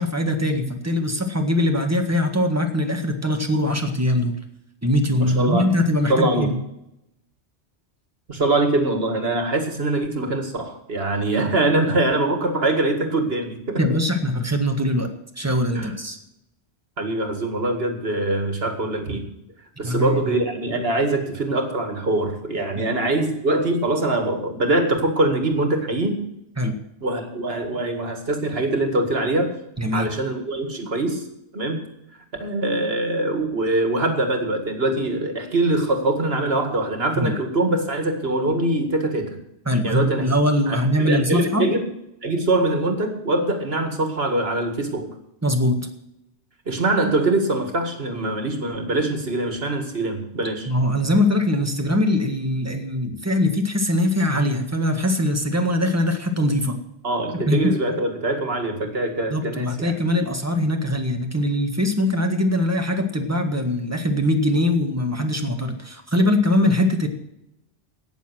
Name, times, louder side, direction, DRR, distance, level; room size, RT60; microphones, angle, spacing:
voice 1, 0.0-4.4 4.8-6.6 13.8-15.1 15.4-16.2 19.8-20.3 22.7-22.9 26.6-26.8 29.8-30.1 37.2-37.3 39.6-41.7 45.4-45.9 50.6-56.8 57.5-57.7 59.3-67.1, left 1 dB, 15° right, 4 dB, 1.6 m, -22 dB
voice 2, 5.2-5.7 6.1-6.5 8.3-13.8 15.7-15.9 17.0-19.3 19.8-26.2 27.0-29.5 29.9-31.3 31.5-31.8 32.4-39.4 39.8-40.3 40.7-41.9 42.2-45.1 46.7-50.7 57.0-59.9, right 2 dB, 60° right, 5 dB, 2.2 m, -23 dB
17.5 x 7.1 x 6.2 m, 0.83 s
omnidirectional pair, 1.1 m